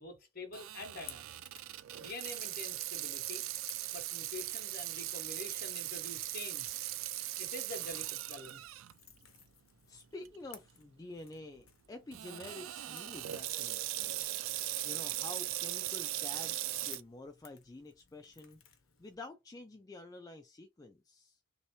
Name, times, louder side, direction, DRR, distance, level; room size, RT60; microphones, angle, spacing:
voice 1, 0.0-1.3 2.0-3.4 3.9-6.7 7.4-8.7, left 2 dB, 45° left, 1.1 m, -46 dB
Water tap faucet / Sink (filling or washing), 0.5-8.9 9.4-9.5 10.3-10.5 12.1-17.0, right 15 dB, 70° right, 0.3 m, -39 dB
Crackle / Crack, 0.8-19.2, left 9 dB, 75° left, 0.8 m, -59 dB
voice 2, 9.9-14.2 14.8-18.6 19.0-21.4, left 2 dB, 15° left, 0.3 m, -49 dB
3.2 x 2.7 x 3.0 m
head